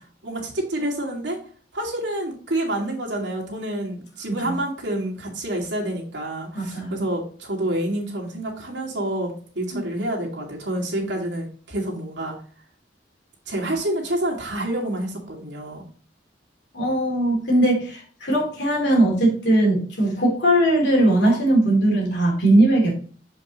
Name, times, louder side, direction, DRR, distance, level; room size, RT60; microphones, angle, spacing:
voice 1, 0.2-1.4 1.7-12.3 13.5-15.8, right 1 dB, 80° right, -1 dB, 2.2 m, -28 dB
voice 2, 6.5-7.0 9.7-9.8 16.7-22.9, right 1 dB, 70° left, -1 dB, 3.0 m, -19 dB
7.3 x 5.2 x 3.0 m, 0.43 s
head